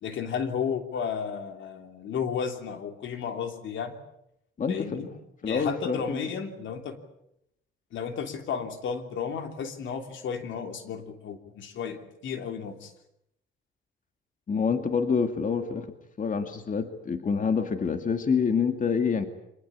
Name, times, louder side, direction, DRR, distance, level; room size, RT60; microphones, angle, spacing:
voice 1, 0.0-4.0 4.7-5.1 5.5-7.0 7.9-12.9, left 7 dB, 75° left, 6 dB, 3.1 m, -33 dB
voice 2, 4.6-5.0 5.4-6.3 14.5-19.2, left 6 dB, 40° left, 7 dB, 2.3 m, -27 dB
26.0 x 20.0 x 8.6 m, 0.80 s
cardioid pair, 90°, 20 cm